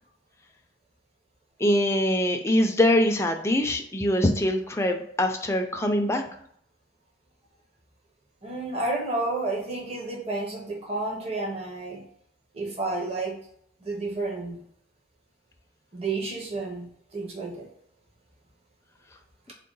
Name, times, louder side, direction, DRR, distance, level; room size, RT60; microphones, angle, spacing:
voice 1, 1.6-6.2, left 1 dB, 15° left, 4 dB, 0.4 m, -23 dB
voice 2, 8.4-12.0 12.5-13.4 13.8-14.6 15.9-16.9 17.1-17.6, right 2 dB, 35° right, -2 dB, 0.8 m, -31 dB
3.7 x 2.2 x 3.8 m, 0.67 s
head